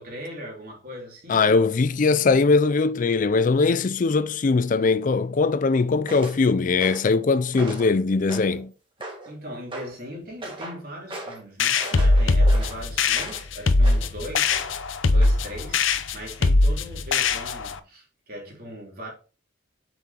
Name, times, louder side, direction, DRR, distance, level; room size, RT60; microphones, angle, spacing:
voice 1, 0.0-1.7 9.3-14.6 15.1-19.1, equal, 50° right, 3.5 m, -39 dB
voice 2, 1.3-8.7, left 4 dB, 40° left, 0.4 m, -21 dB
sound 1, 6.1-6.4 6.8-7.1 7.5-7.9 8.3-8.6 9.0-9.3 9.7-9.9 10.4-10.8 11.1-11.4 11.8-13.5 13.8-14.1 14.5-14.9 15.2-15.4, right 2 dB, 25° right, 2.2 m, -37 dB
sound 2, 11.6-17.8, left 2 dB, 85° left, 0.8 m, -21 dB
8.3 x 6.0 x 2.9 m
head